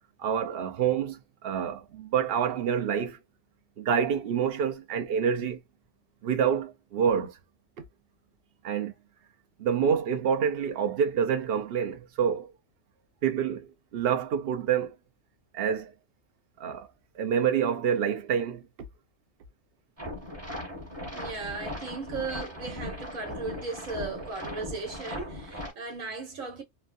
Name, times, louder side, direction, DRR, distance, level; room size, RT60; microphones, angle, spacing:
voice 1, 0.2-3.2 3.8-5.6 6.2-7.4 8.6-8.9 9.6-12.5 13.2-14.9 15.5-15.9 16.6-16.9 17.1-18.7, right 7 dB, 55° right, 0.8 m, -27 dB
sound 1, 20.0-25.7, left 1 dB, 10° right, 1.0 m, -38 dB
voice 2, 21.1-26.6, right 4 dB, 80° right, 1.4 m, -36 dB
3.1 x 2.2 x 2.5 m
omnidirectional pair, 1.4 m